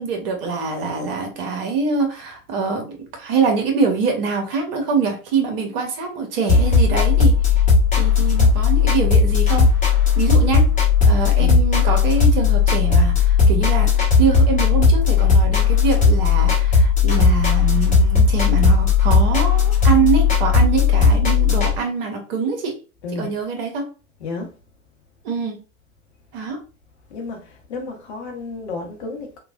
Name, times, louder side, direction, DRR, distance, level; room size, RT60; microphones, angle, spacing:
voice 1, 0.0-7.3 8.0-9.7 10.2-10.7 11.0-22.8 23.1-23.8 25.2-25.6 26.3-26.6, right 5 dB, 40° right, 0.9 m, -24 dB
sound 1, 6.5-21.7, left 5 dB, 15° left, 1.0 m, -16 dB
voice 2, 27.1-29.4, left 3 dB, 50° left, 0.9 m, -32 dB
3.1 x 2.2 x 2.4 m
figure-of-eight pair, 105°, 44 cm